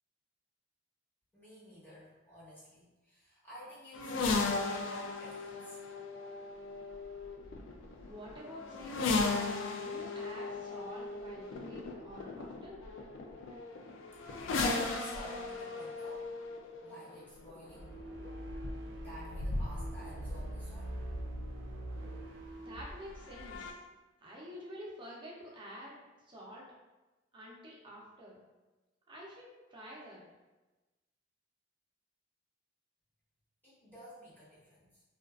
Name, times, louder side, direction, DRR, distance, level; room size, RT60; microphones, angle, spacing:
voice 1, 1.3-5.8 14.1-16.3 16.8-18.0 19.0-21.0 33.6-35.0, equal, 10° left, -10 dB, 1.0 m, -51 dB
sound 1, 3.9-21.7 22.8-23.7, left 3 dB, 85° left, 0.3 m, -37 dB
voice 2, 8.1-9.3 9.7-12.8 22.6-23.8 24.2-26.0 26.2-26.7 27.3-28.4 29.1-30.2, equal, 25° right, -5 dB, 0.6 m, -48 dB
sound 2, 17.6-22.9, right 1 dB, 85° right, 0.4 m, -43 dB
2.4 x 2.3 x 2.3 m, 1.1 s
head